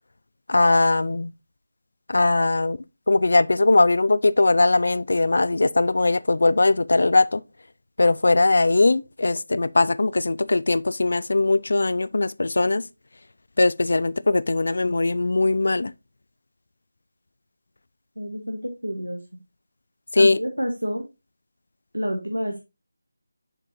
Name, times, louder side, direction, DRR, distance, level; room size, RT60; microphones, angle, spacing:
voice 1, 0.5-1.3 2.1-2.8 3.1-7.4 8.0-12.8 13.6-15.9 20.1-20.4, left 2 dB, 55° left, 0.3 m, -20 dB
voice 2, 18.2-19.2 20.1-21.0 21.9-22.6, equal, 85° right, 1.2 m, -28 dB
7.2 x 5.1 x 2.7 m
figure-of-eight pair, 160°, 0 cm